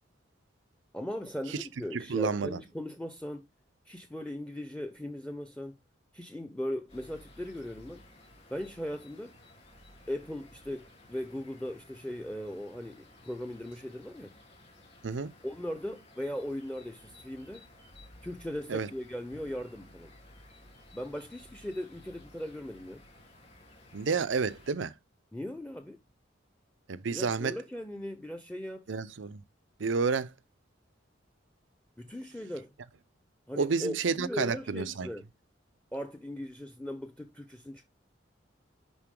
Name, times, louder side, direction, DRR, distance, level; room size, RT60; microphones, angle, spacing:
voice 1, 0.9-3.5 3.9-5.8 6.1-8.0 8.5-9.4 10.1-14.3 15.4-17.6 18.2-20.1 20.9-23.0 25.3-26.0 27.1-28.9 32.0-32.7 33.5-35.2 35.9-37.8, left 1 dB, 5° left, 0.8 m, -38 dB
voice 2, 1.9-2.6 15.0-15.3 18.7-18.9 23.9-24.9 26.9-27.6 28.9-29.4 29.8-30.3 33.6-35.1, right 5 dB, 75° right, 0.6 m, -30 dB
sound 1, 6.9-24.7, left 1 dB, 35° left, 3.3 m, -56 dB
10.5 x 4.1 x 3.7 m
head